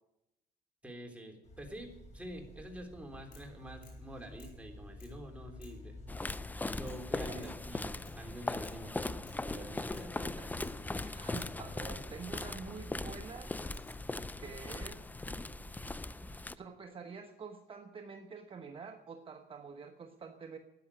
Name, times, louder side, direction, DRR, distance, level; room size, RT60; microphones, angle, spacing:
voice 1, 0.8-5.9 6.7-10.3, right 1 dB, 10° right, 1 dB, 3.5 m, -47 dB
Buzz, 1.4-16.5, left 1 dB, 40° left, 5.4 m, -52 dB
sound 1, 3.3-3.6 3.8-4.1 4.4-4.6 5.0-5.2 5.6-5.9 6.3-6.5 6.9-7.1 7.4-7.7 8.1-8.2 8.6-8.9 9.3-9.5 9.9-10.2 10.6-10.8 11.4-11.6 12.4-12.6 13.7-14.1 15.2-15.7, left 6 dB, 60° left, 5.8 m, -61 dB
sound 2, 6.1-16.6, left 2 dB, 10° left, 0.5 m, -39 dB
voice 2, 7.3-7.6 10.2-10.5 10.9-13.5 14.4-15.4 16.6-20.6, right 5 dB, 30° right, 5 dB, 1.2 m, -47 dB
13.0 x 9.6 x 9.8 m, 0.93 s
cardioid pair, 110°, 17 cm